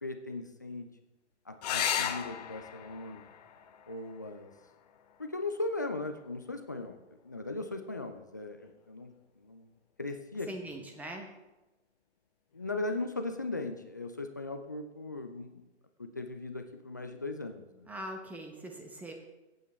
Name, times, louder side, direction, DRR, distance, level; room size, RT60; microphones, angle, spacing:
voice 1, 0.0-0.9 1.5-3.3 3.9-4.5 5.2-7.0 7.2-9.7 10.0-10.9 12.5-15.6 16.0-17.9, left 2 dB, 20° left, 7 dB, 0.3 m, -38 dB
sound 1, 1.6-6.6 8.5-9.2 12.6-12.7 13.0-13.1, left 9 dB, 35° left, 0.9 m, -38 dB
voice 2, 10.5-11.3 17.9-19.1, right 1 dB, 5° right, 3 dB, 0.9 m, -41 dB
23.5 x 8.6 x 3.2 m, 1.1 s
figure-of-eight pair, 125°, 35 cm